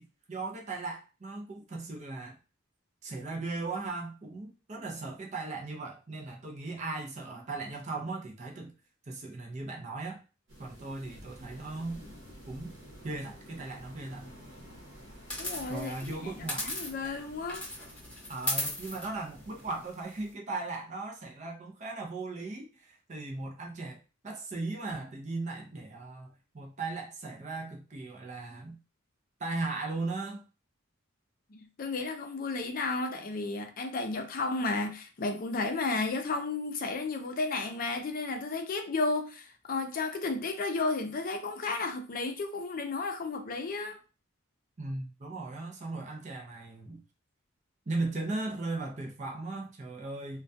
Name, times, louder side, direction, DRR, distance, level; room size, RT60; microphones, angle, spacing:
voice 1, 0.0-2.4 3.0-8.7 9.1-10.2 10.6-12.0 12.5-12.7 13.0-14.3 15.7-16.7 18.3-24.0 24.2-28.8 29.4-30.4 44.8-47.0 47.9-50.4, right 3 dB, 35° right, 0.4 m, -37 dB
sound 1, 10.5-19.9, equal, 65° right, 0.9 m, -51 dB
sound 2, 15.3-17.2 17.5-20.3, left 1 dB, 5° left, 0.8 m, -37 dB
voice 2, 15.4-17.6 31.5-44.0, left 3 dB, 45° left, 0.4 m, -33 dB
2.2 x 2.2 x 2.5 m
head